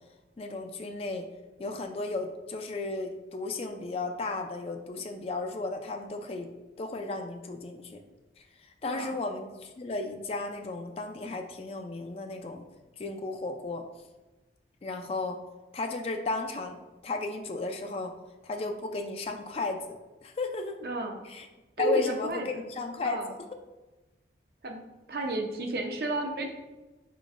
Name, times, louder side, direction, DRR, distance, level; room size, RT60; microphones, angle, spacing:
voice 1, 0.4-1.3 1.6-6.5 6.8-8.0 8.8-12.6 13.0-13.8 14.8-15.4 15.7-18.1 18.4-20.8 21.2-21.5 21.8-23.4, left 3 dB, 35° left, 5 dB, 0.3 m, -34 dB
voice 2, 8.8-9.1 20.8-21.2 21.8-22.5 23.0-23.3 24.6-24.8 25.1-26.5, right 2 dB, 55° right, 3 dB, 0.6 m, -32 dB
5.0 x 3.8 x 2.4 m, 1.1 s
head